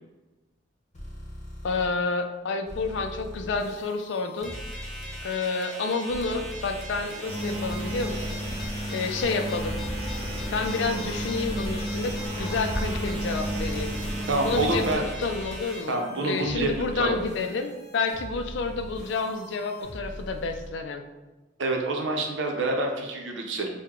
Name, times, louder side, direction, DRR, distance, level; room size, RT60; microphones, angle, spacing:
sound 1, 0.9-1.9 2.7-5.2 6.1-8.7 9.5-20.7, left 1 dB, 40° left, 0.9 m, -42 dB
voice 1, 1.6-4.5 5.2-8.4 8.9-9.8 10.5-14.0 14.4-21.0, left 4 dB, 65° left, 6 dB, 0.4 m, -29 dB
sound 2, 4.4-15.8, equal, ahead, 0.9 m, -41 dB
sound 3, 7.2-14.9, right 1 dB, 30° right, 1.1 m, -32 dB
voice 2, 14.3-15.1 15.9-17.2 21.6-23.7, right 2 dB, 70° right, 2 dB, 0.7 m, -27 dB
4.6 x 2.2 x 3.7 m, 1.2 s
head